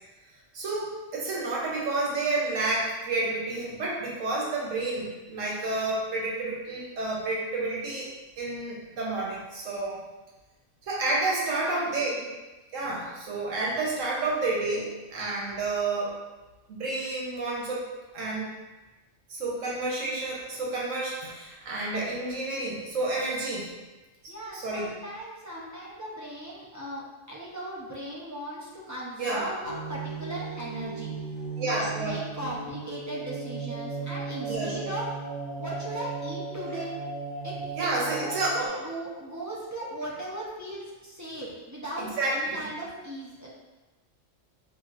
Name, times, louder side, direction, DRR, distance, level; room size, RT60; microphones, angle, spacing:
voice 1, 0.5-8.1 8.4-10.0 10.8-12.1 12.7-16.1 16.7-17.9 18.1-18.5 19.3-23.7 24.5-24.9 29.2-29.5 31.6-32.1 34.4-34.8 37.7-38.7 42.0-42.7, right 2 dB, 85° right, -4 dB, 1.2 m, -30 dB
voice 2, 11.4-12.3 24.3-31.1 31.6-35.1 35.6-36.9 37.4-37.5 38.0-43.5, right 1 dB, 20° right, -6 dB, 0.5 m, -38 dB
sound 1, 29.6-38.7, right 4 dB, 35° left, 1.2 m, -36 dB
4.9 x 2.8 x 2.5 m, 1.1 s
omnidirectional pair, 1.3 m